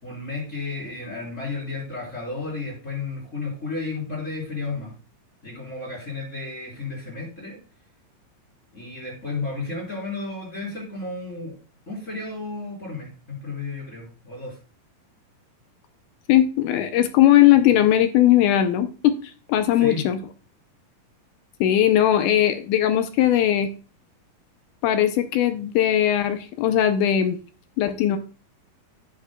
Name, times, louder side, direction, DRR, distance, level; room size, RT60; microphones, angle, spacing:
voice 1, 0.0-4.9 5.4-7.6 8.7-11.6 11.9-14.6 19.8-20.0, left 3 dB, 20° left, -3 dB, 3.7 m, -33 dB
voice 2, 16.3-19.2 19.5-20.2 21.6-23.7 24.8-27.4 27.8-28.2, left 11 dB, 80° left, 9 dB, 1.9 m, -19 dB
12.5 x 8.4 x 2.2 m, 0.36 s
omnidirectional pair, 4.0 m